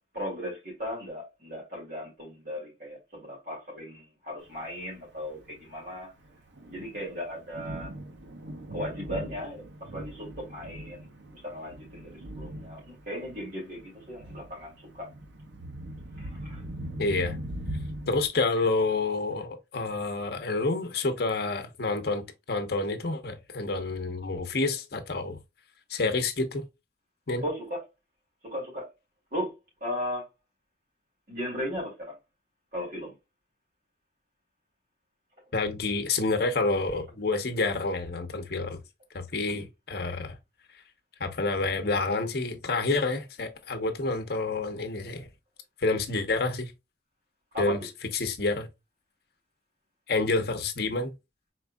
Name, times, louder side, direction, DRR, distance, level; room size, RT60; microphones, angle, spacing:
voice 1, 0.1-6.1 6.7-7.9 8.7-11.1 11.3-15.1 16.1-16.6 27.4-27.8 28.4-28.9 29.3-29.5 29.8-30.2 31.3-32.2 32.7-33.1 39.5-39.7 47.5-47.8, equal, 50° right, 2.3 m, -36 dB
Thunder, 4.6-18.3, right 1 dB, 75° right, 0.8 m, -41 dB
voice 2, 17.0-17.4 18.1-25.4 25.9-26.6 27.3-27.4 35.5-38.8 39.1-40.3 41.2-45.3 45.8-46.7 47.6-47.8 48.1-48.7 50.1-51.1, left 3 dB, 60° left, 0.8 m, -28 dB
4.5 x 3.6 x 2.2 m
head